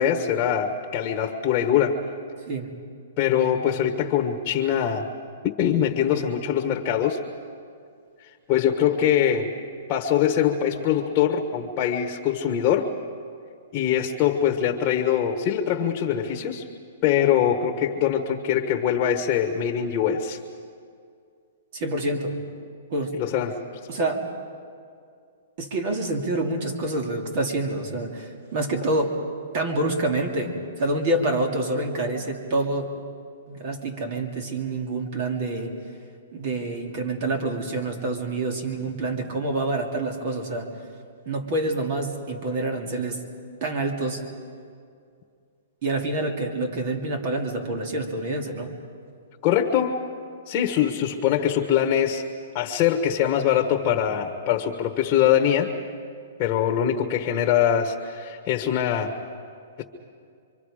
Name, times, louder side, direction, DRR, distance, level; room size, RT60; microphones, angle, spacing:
voice 1, 0.0-2.0 3.2-5.1 5.4-7.2 8.5-9.5 9.9-12.9 13.7-16.6 17.0-20.4 23.1-23.6 49.4-50.0 50.5-52.2 52.5-55.7 56.4-59.2 59.8-59.9, left 9 dB, 30° left, 4 dB, 1.3 m, -23 dB
voice 2, 21.7-22.3 22.9-23.2 23.9-24.3 25.6-29.2 29.5-32.9 33.5-35.7 36.3-40.7 41.3-43.2 43.6-44.2 45.8-48.7, right 2 dB, 45° right, 3 dB, 2.6 m, -27 dB
27.0 x 24.5 x 5.0 m, 2.3 s
hypercardioid pair, 145°, 0 cm